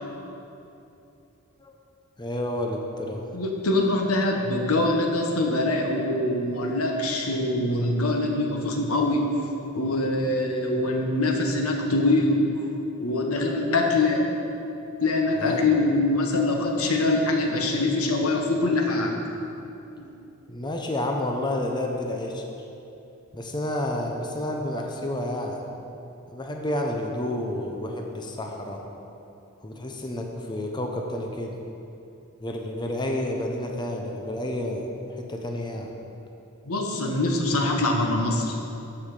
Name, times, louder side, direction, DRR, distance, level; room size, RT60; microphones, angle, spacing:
voice 1, 2.2-3.3 15.4-15.8 20.5-22.4 23.3-25.6 26.3-28.8 29.6-31.5 32.4-35.9, left 1 dB, 20° left, 1 dB, 0.7 m, -30 dB
voice 2, 3.3-9.3 9.7-12.5 13.0-14.2 15.0-19.2 20.0-20.1 36.6-38.6, left 2 dB, 85° left, 1 dB, 1.3 m, -24 dB
13.5 x 5.7 x 4.9 m, 2.8 s
head